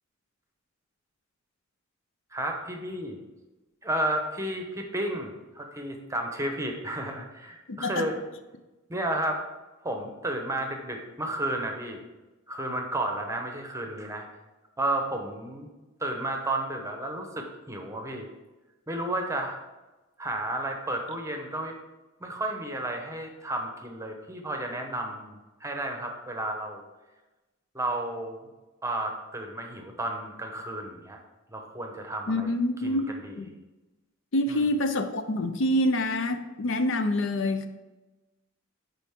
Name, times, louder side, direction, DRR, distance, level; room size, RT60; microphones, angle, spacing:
voice 1, 2.3-3.2 3.8-8.1 8.9-9.4 9.8-12.0 12.5-14.2 14.8-15.7 16.0-18.3 18.9-19.6 20.2-21.8 22.2-26.8 27.7-28.4 28.8-31.2 31.5-32.5 32.8-33.3 34.5-34.6, right 1 dB, 15° right, 3 dB, 0.8 m, -32 dB
voice 2, 7.7-8.1 32.3-33.5 34.3-37.7, left 1 dB, 65° left, 9 dB, 0.5 m, -27 dB
9.9 x 4.1 x 3.6 m, 1.1 s
head